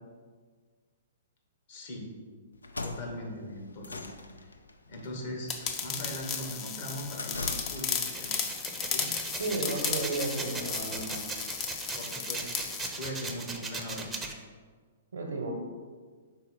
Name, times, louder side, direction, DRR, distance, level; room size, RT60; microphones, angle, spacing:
voice 1, 1.7-2.1 2.8-4.5 4.9-5.5 5.8-8.4 8.9-9.1 11.9-12.6 12.9-14.2, equal, 55° left, 0 dB, 1.3 m, -40 dB
sound 1, 2.5-8.2, left 2 dB, 80° left, 0.4 m, -42 dB
sound 2, 5.5-12.9, left 6 dB, 30° left, 0.6 m, -35 dB
sound 3, 8.0-14.3, right 3 dB, 10° right, 0.6 m, -38 dB
voice 2, 9.4-11.4 15.1-15.5, right 2 dB, 70° right, -1 dB, 0.9 m, -33 dB
5.6 x 4.1 x 4.2 m, 1.5 s
figure-of-eight pair, 115°, 0 cm